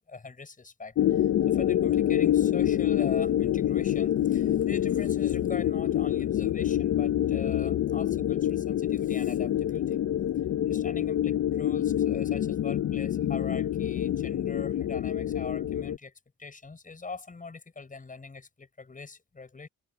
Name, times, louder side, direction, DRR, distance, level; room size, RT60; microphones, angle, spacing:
voice 1, 0.0-10.0 10.6-16.1 16.4-19.7, left 4 dB, 25° left, 7.0 m, -42 dB
sound 1, 1.0-16.0, left 11 dB, 55° left, 0.7 m, -26 dB
cardioid pair, 90°, 30 cm